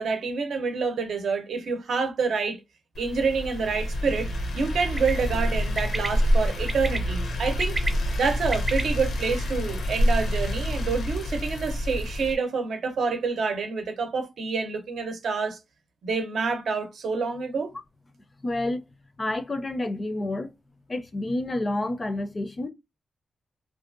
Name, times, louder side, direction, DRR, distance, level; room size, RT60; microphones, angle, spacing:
voice 1, 0.0-2.6 3.0-7.8 8.2-15.6 16.0-17.7, right 4 dB, 80° right, 0.7 m, -27 dB
sound 1, 2.9-12.3, equal, 85° left, 0.6 m, -27 dB
Bird, 4.8-5.1 5.8-6.1 6.7-7.0 7.4-8.8, right 2 dB, 25° right, 0.5 m, -30 dB
voice 2, 18.4-18.8 19.2-20.5 20.9-22.7, left 2 dB, 30° left, 0.4 m, -29 dB
2.6 x 2.4 x 2.5 m
wide cardioid pair, 115°, 0 cm